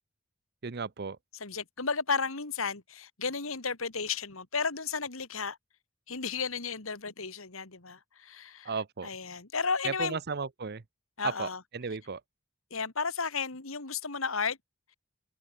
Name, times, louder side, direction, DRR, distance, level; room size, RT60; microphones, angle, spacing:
voice 1, 0.6-1.2 8.7-9.1 9.8-10.8 11.2-11.5 11.7-12.2, right 5 dB, 50° right, 0.7 m, -34 dB
voice 2, 1.3-5.6 6.1-10.2 11.2-11.6 12.7-14.6, left 5 dB, 75° left, 2.4 m, -33 dB
head